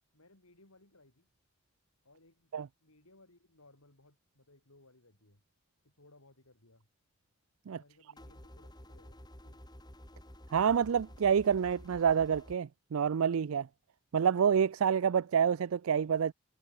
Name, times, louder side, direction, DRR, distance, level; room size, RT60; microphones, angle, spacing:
voice 1, 0.1-1.3 2.0-2.5 2.8-5.4 5.8-6.9 7.7-9.6, left 2 dB, 80° left, 6.3 m, -63 dB
sound 1, 8.2-12.6, equal, 20° left, 5.5 m, -52 dB
voice 2, 10.5-13.7 14.1-16.3, right 7 dB, 75° right, 0.4 m, -28 dB
head